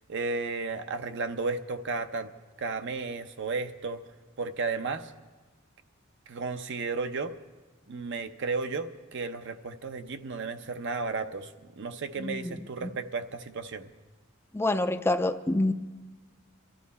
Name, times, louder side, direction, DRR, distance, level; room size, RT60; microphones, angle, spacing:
voice 1, 0.1-2.3 2.6-4.0 4.4-5.1 6.3-7.3 7.9-11.5 11.8-13.9, right 4 dB, 60° right, 8 dB, 0.7 m, -33 dB
voice 2, 12.2-12.6 12.8-12.9 14.5-15.7, left 2 dB, 10° left, 9 dB, 0.4 m, -27 dB
23.0 x 12.5 x 4.2 m, 1.2 s
head